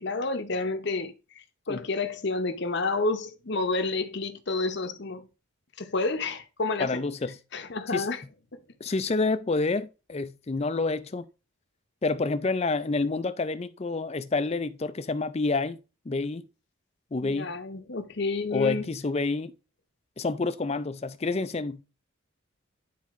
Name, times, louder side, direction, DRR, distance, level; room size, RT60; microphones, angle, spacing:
voice 1, 0.0-5.3 5.8-7.0 7.5-8.2 8.5-8.6 17.2-18.8, left 3 dB, 50° left, 0.8 m, -30 dB
voice 2, 6.8-7.4 7.9-8.1 8.8-11.3 12.0-15.8 16.1-16.5 17.1-17.5 18.5-19.5 20.2-21.8, left 3 dB, 30° left, 0.4 m, -28 dB
10.5 x 4.1 x 3.6 m
head